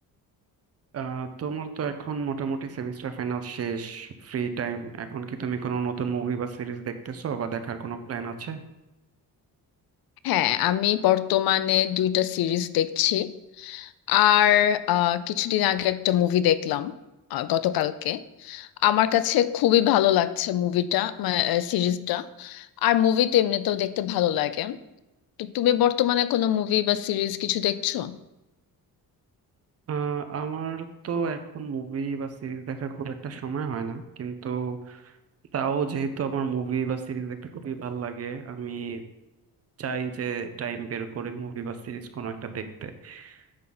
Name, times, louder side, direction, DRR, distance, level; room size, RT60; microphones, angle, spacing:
voice 1, 0.9-8.6 29.9-35.2 35.5-39.0 39.8-43.5, right 6 dB, 40° right, 9 dB, 0.7 m, -31 dB
voice 2, 10.2-16.9 17.3-24.8 25.4-28.2, left 12 dB, 75° left, 15 dB, 0.5 m, -23 dB
9.5 x 3.8 x 5.9 m, 1.0 s
cardioid pair, 175°, 36 cm